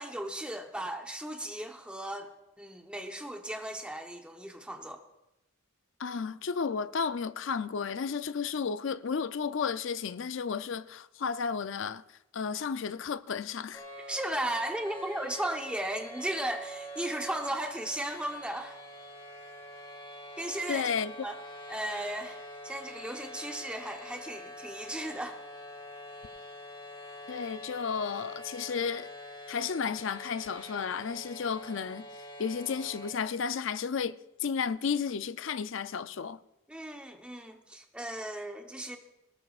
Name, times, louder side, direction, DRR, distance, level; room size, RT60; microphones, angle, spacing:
voice 1, 0.0-2.3 2.6-5.0 14.1-18.8 20.4-20.9 21.2-21.3 21.7-25.4 36.7-39.0, right 1 dB, 5° right, 0.9 m, -36 dB
voice 2, 6.0-12.0 12.3-13.8 20.7-21.1 27.3-29.1 29.5-32.1 32.4-36.4, left 6 dB, 60° left, 0.4 m, -33 dB
sound 1, 13.7-33.1, equal, 25° left, 3.1 m, -45 dB
19.5 x 19.0 x 2.4 m
head